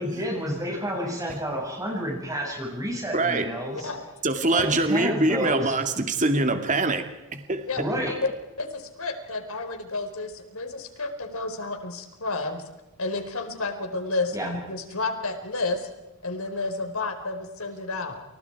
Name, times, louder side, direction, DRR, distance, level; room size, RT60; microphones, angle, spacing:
voice 1, 0.0-3.9 4.5-5.7 7.8-8.1 14.3-14.5, equal, 15° right, 0 dB, 6.2 m, -30 dB
voice 2, 3.1-3.5 4.2-7.0 7.3-7.6, right 2 dB, 35° right, 6 dB, 2.2 m, -23 dB
voice 3, 3.7-4.1 7.7-8.2 8.6-12.6 13.0-15.9 16.2-18.2, left 3 dB, 70° left, 6 dB, 4.6 m, -31 dB
30.0 x 29.5 x 4.8 m, 1.0 s
head